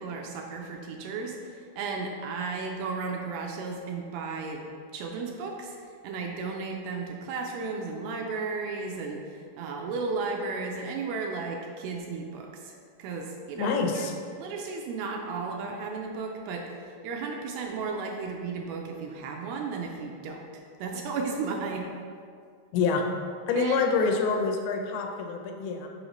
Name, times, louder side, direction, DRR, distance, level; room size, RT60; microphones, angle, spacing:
voice 1, 0.0-5.8 6.0-14.1 14.4-21.9 23.6-23.9, right 4 dB, 80° right, 1 dB, 2.2 m, -34 dB
voice 2, 13.6-14.1 22.7-23.1 23.5-25.9, left 4 dB, 85° left, 4 dB, 2.5 m, -26 dB
6.4 x 5.5 x 3.0 m, 2.2 s
omnidirectional pair, 4.5 m